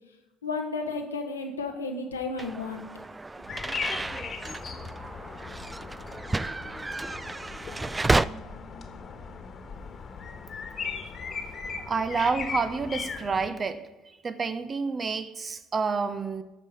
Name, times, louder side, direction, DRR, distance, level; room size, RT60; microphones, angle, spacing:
voice 1, 0.4-2.9, left 3 dB, 90° left, 1.0 m, -32 dB
sound 1, 2.4-8.2, right 2 dB, 20° right, 0.3 m, -31 dB
sound 2, 3.5-13.5, left 5 dB, 40° left, 1.5 m, -38 dB
voice 2, 11.9-13.8 14.2-16.4, right 4 dB, 35° right, 0.9 m, -29 dB
13.5 x 4.9 x 5.5 m
hypercardioid pair, 55°, 0 cm